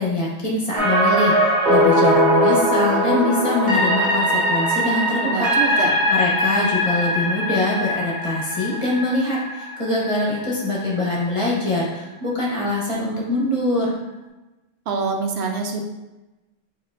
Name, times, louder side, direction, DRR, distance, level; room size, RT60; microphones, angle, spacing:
voice 1, 0.0-5.8 6.1-14.0, left 2 dB, 30° left, -5 dB, 0.9 m, -23 dB
sound 1, 0.8-10.8 11.1-11.2, equal, 45° right, 1.2 m, -20 dB
voice 2, 5.2-6.1 14.9-15.8, right 4 dB, 80° right, 3 dB, 0.8 m, -26 dB
6.2 x 2.4 x 2.5 m, 1.0 s
omnidirectional pair, 1.1 m